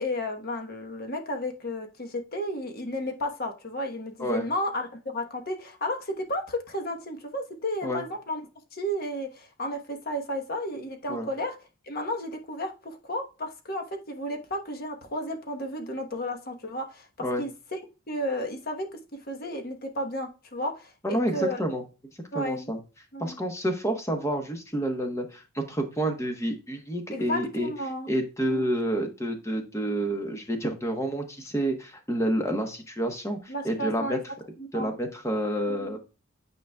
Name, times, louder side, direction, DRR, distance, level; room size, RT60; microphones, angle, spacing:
voice 1, 0.0-4.9 5.1-8.4 8.7-11.6 11.8-17.1 17.4-17.8 18.1-18.9 19.1-21.6 22.3-22.7 23.1-23.3 27.1-28.1 28.5-28.6 33.5-34.2 34.6-34.9 35.7-36.0, left 1 dB, 45° left, 4 dB, 1.2 m, -33 dB
voice 2, 21.0-21.8 22.3-22.8 23.2-27.7 28.1-34.2 34.7-36.0, right 1 dB, 15° left, 4 dB, 1.1 m, -29 dB
9.2 x 5.0 x 2.3 m, 0.31 s
head